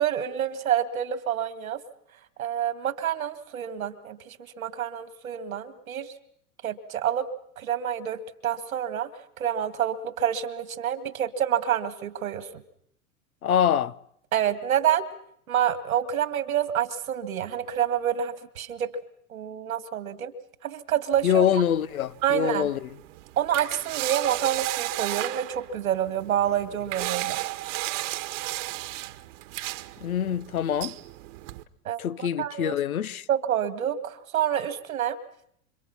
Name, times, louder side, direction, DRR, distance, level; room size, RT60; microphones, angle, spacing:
voice 1, 0.0-1.8 2.4-6.1 6.6-7.3 7.6-9.1 9.4-12.5 14.3-15.1 15.5-18.9 19.3-20.3 20.6-21.5 22.2-22.7 23.4-27.4 31.9-32.8 33.3-35.2, right 10 dB, 80° right, 2.3 m, -28 dB
voice 2, 13.4-13.9 21.2-22.9 30.0-30.9 32.0-33.2, left 9 dB, 80° left, 1.0 m, -25 dB
sound 1, 21.1-31.6, right 18 dB, 60° right, 1.5 m, -34 dB
29.5 x 26.0 x 5.9 m
hypercardioid pair, 100°, 42 cm